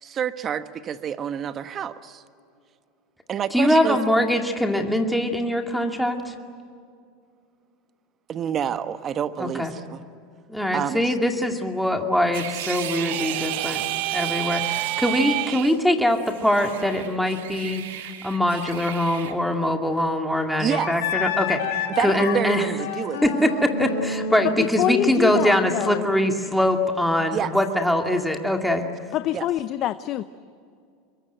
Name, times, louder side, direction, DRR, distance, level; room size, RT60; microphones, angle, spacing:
voice 1, 0.0-2.2 3.3-4.0 8.3-10.0 10.7-11.1 20.6-20.9 22.0-23.2 27.3-27.5 29.3-29.5, right 8 dB, 35° right, 11 dB, 1.3 m, -28 dB
voice 2, 3.5-6.4 9.4-9.7 10.5-13.8 14.1-17.8 18.2-22.7 23.2-28.9, left 1 dB, ahead, 3 dB, 2.3 m, -23 dB
sound 1, 12.3-15.8 16.1-19.3, right 11 dB, 80° right, 2.0 m, -37 dB
sound 2, 12.8-15.7, right 18 dB, 60° right, 0.8 m, -28 dB
Wind instrument woodwind instrument, 20.7-26.1, left 5 dB, 80° left, 3.3 m, -30 dB
voice 3, 24.4-26.0 29.1-30.2, left 12 dB, 50° left, 13 dB, 0.7 m, -25 dB
26.0 x 22.5 x 9.2 m, 2.3 s
hypercardioid pair, 105°, 0 cm